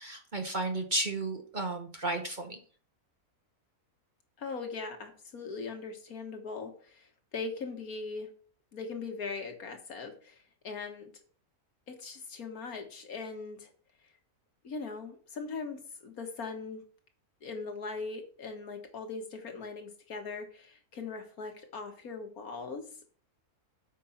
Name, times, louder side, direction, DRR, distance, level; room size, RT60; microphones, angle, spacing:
voice 1, 0.0-2.6, right 2 dB, 35° right, 4 dB, 1.0 m, -33 dB
voice 2, 4.4-8.3 8.7-11.1 11.9-13.7 14.6-16.8 17.4-22.8, left 4 dB, 65° left, 4 dB, 1.9 m, -40 dB
8.7 x 5.4 x 5.8 m, 0.42 s
omnidirectional pair, 1.6 m